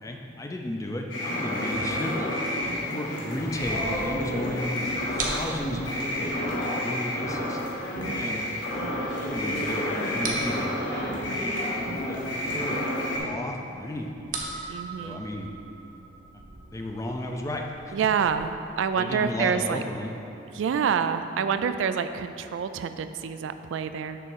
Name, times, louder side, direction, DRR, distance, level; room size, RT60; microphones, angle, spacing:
voice 1, 0.0-2.3 2.8-4.9 5.1-7.6 8.1-8.5 9.2-10.8 11.2-11.5 11.9-12.9 13.2-14.1 15.0-15.5 16.7-18.0 18.9-20.1, left 1 dB, 15° left, 2 dB, 0.4 m, -34 dB
sound 1, 1.1-13.2, left 1 dB, 70° left, 1.5 m, -30 dB
voice 2, 2.9-3.3 8.0-8.3 14.7-15.2 17.9-19.8 20.5-24.2, right 6 dB, 75° right, 10 dB, 0.3 m, -27 dB
sound 2, 3.6-18.4, right 3 dB, 45° right, 0.8 m, -41 dB
6.8 x 3.6 x 6.2 m, 2.8 s
head